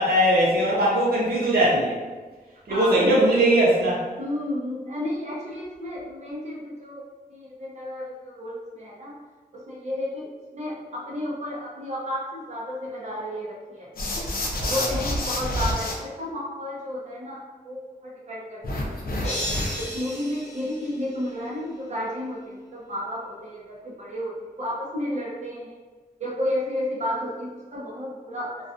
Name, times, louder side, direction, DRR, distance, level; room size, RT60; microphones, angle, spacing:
voice 1, 0.0-2.0 2.7-4.0 14.6-14.9, right 1 dB, 85° right, -6 dB, 0.7 m, -20 dB
voice 2, 2.7-3.1 4.2-7.0 7.3-9.1 9.5-13.9 14.7-19.3 19.8-25.7 26.2-28.7, left 1 dB, 45° right, -6 dB, 0.7 m, -32 dB
sound 1, 14.0-15.9 18.6-20.0, left 1 dB, 75° left, 0.5 m, -28 dB
sound 2, 19.2-21.6, left 1 dB, 50° left, 0.8 m, -34 dB
2.3 x 2.3 x 2.5 m, 1.4 s
wide cardioid pair, 100°, 16 cm